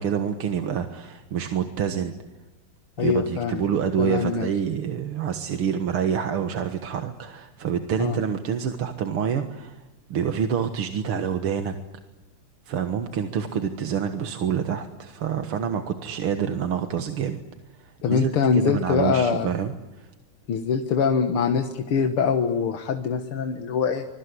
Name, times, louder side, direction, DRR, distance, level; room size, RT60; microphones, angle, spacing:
voice 1, 0.0-2.1 3.0-9.8 10.1-11.7 12.7-17.4 17.8-18.3 18.6-20.1, right 8 dB, 80° right, 7 dB, 2.4 m, -27 dB
voice 2, 3.0-3.7 4.0-4.5 8.0-8.2 18.0-19.5 20.5-24.1, left 6 dB, 75° left, 6 dB, 2.3 m, -23 dB
26.0 x 22.5 x 9.7 m, 1.1 s
omnidirectional pair, 2.4 m